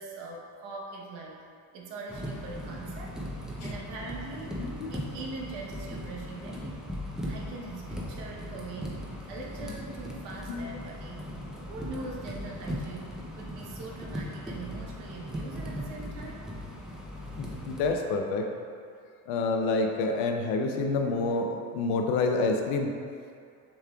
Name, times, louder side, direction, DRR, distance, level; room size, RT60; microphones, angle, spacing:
voice 1, 0.0-1.4 1.7-3.2 3.6-4.6 4.9-11.3 11.7-16.4, right 3 dB, 75° right, -2 dB, 1.0 m, -42 dB
sound 1, 2.1-18.0, equal, ahead, 0.5 m, -38 dB
voice 2, 4.6-4.9 10.5-10.7 17.4-18.5 19.3-22.9, left 3 dB, 80° left, 3 dB, 0.7 m, -28 dB
6.7 x 3.2 x 2.3 m, 2.4 s
supercardioid pair, 100°, 43 cm